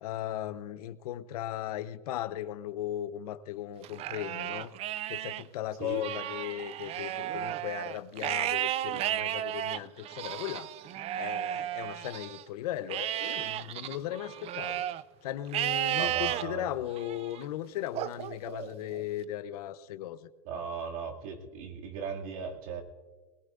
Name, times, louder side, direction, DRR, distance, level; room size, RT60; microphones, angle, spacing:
voice 1, 0.0-4.7 5.1-10.7 11.1-14.8 15.2-20.2, left 12 dB, 75° left, 0.9 m, -37 dB
Livestock farm animals working animals, 3.8-5.4 5.9-12.4 12.9-15.0 15.5-16.4 17.0-17.4 17.9-19.0, right 12 dB, 30° right, 0.4 m, -34 dB
voice 2, 15.9-16.7 20.4-22.8, right 6 dB, 65° right, 2.5 m, -37 dB
21.0 x 19.0 x 2.6 m
supercardioid pair, 125°, 19 cm